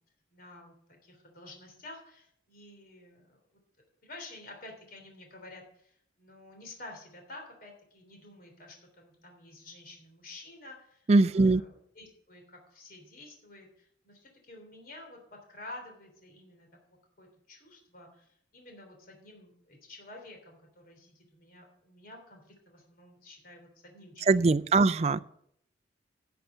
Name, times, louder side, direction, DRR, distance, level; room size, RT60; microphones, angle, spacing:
voice 1, 0.3-3.6 4.0-16.7 17.2-24.4 24.7-24.8, left 2 dB, 50° left, 2 dB, 3.2 m, -50 dB
voice 2, 11.1-11.6 24.3-25.2, right 3 dB, 35° right, 11 dB, 0.4 m, -22 dB
11.5 x 6.8 x 7.1 m, 0.69 s
head